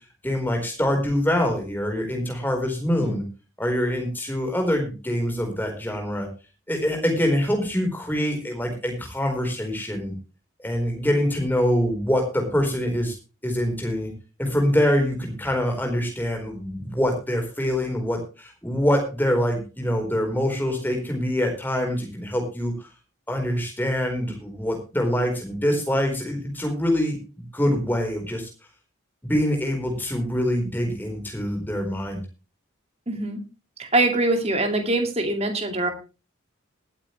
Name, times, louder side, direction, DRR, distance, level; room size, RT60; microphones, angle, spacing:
voice 1, 0.2-3.2 3.6-6.3 6.7-10.1 10.6-13.1 13.4-14.1 14.4-22.9 23.3-27.2 27.5-28.5 29.3-32.2, equal, 10° left, 2 dB, 4.4 m, -24 dB
voice 2, 33.1-33.4 33.8-35.9, right 2 dB, 30° right, 5 dB, 2.4 m, -23 dB
20.0 x 9.0 x 3.3 m, 0.31 s
head